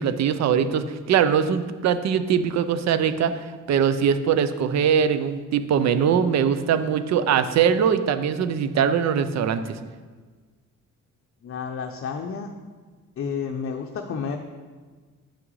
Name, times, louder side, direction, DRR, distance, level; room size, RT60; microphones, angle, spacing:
voice 1, 0.0-9.8, right 7 dB, 60° right, 12 dB, 0.6 m, -22 dB
voice 2, 11.4-12.5 13.2-14.4, left 6 dB, 45° left, 3 dB, 0.6 m, -30 dB
8.2 x 6.0 x 3.1 m, 1.4 s
cardioid pair, 90°, 30 cm